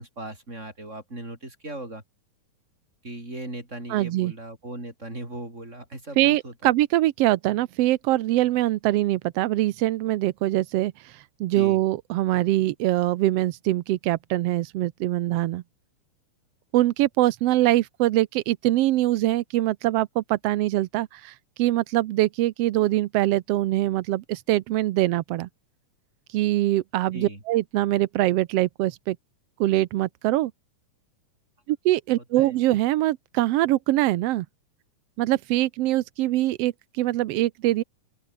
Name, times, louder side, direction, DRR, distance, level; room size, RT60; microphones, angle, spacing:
voice 1, 0.0-2.0 3.0-6.7 11.5-11.8 27.1-27.4 32.4-32.6, right 1 dB, 20° right, 7.5 m, -38 dB
voice 2, 3.9-4.3 6.2-15.6 16.7-25.5 26.3-29.2 29.6-30.5 31.7-34.5 35.2-37.8, right 16 dB, 80° right, 1.4 m, -23 dB
open air
omnidirectional pair, 3.7 m